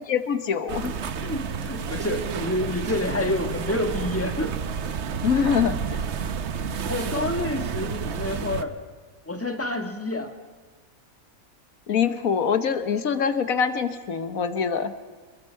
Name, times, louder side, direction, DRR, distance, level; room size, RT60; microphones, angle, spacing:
voice 1, 0.1-0.9 5.2-6.0 11.9-14.9, left 7 dB, 80° left, 10 dB, 1.6 m, -24 dB
sound 1, 0.7-8.6, right 6 dB, 55° right, 1.1 m, -30 dB
voice 2, 1.2-4.5 6.8-8.7 9.3-10.3, left 1 dB, 10° left, 5 dB, 1.8 m, -28 dB
27.5 x 21.5 x 4.6 m, 1.5 s
omnidirectional pair, 1.4 m